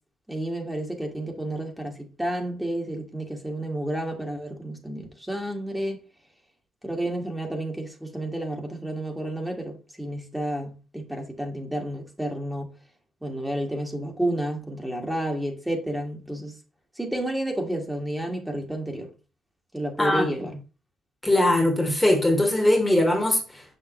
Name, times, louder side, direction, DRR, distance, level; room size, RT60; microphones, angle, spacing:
voice 1, 0.3-6.0 6.8-12.7 13.2-16.6 17.0-19.1 19.7-20.5, right 1 dB, 10° right, 1.7 m, -31 dB
voice 2, 20.0-20.3 21.2-23.6, left 1 dB, 10° left, 1.6 m, -21 dB
6.6 x 5.6 x 3.0 m
cardioid pair, 90°, 0 cm